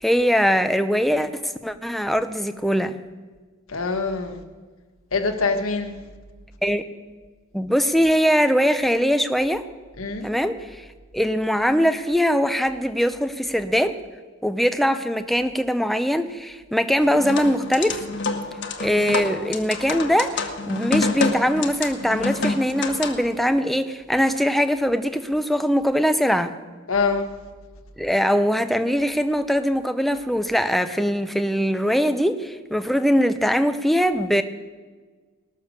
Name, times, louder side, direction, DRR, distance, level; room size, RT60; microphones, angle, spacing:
voice 1, 0.0-3.0 6.6-6.8 7.5-9.6 10.2-10.8 11.1-13.9 14.4-18.0 18.8-26.5 28.0-34.4, equal, ahead, 0.6 m, -21 dB
voice 2, 3.7-4.4 5.1-5.9 10.0-10.3 26.9-27.3, left 4 dB, 90° left, 1.4 m, -24 dB
sound 1, 17.0-23.3, left 3 dB, 55° left, 1.3 m, -28 dB
19.5 x 6.7 x 6.6 m
head